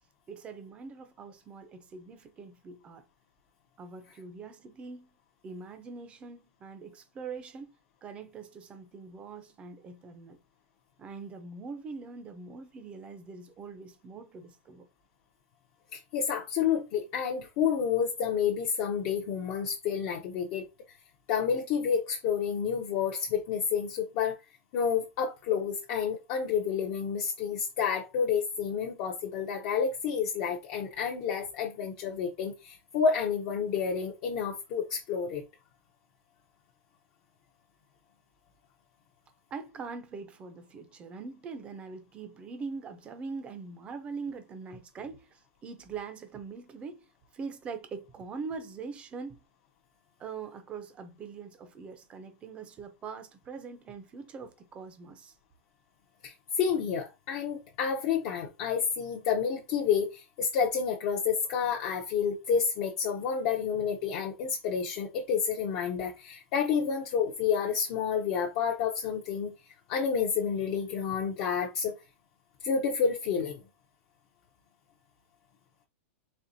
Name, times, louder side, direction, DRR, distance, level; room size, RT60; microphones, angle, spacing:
voice 1, 0.3-3.1 3.8-5.1 5.4-7.7 8.0-10.4 11.0-14.9 39.5-49.4 50.2-55.4, right 5 dB, 15° right, 0.6 m, -42 dB
voice 2, 15.9-20.6 21.3-24.4 24.7-35.4 56.2-69.5 69.9-71.9 72.6-73.6, left 7 dB, 35° left, 0.6 m, -29 dB
4.3 x 3.2 x 2.6 m
supercardioid pair, 170°, 7 cm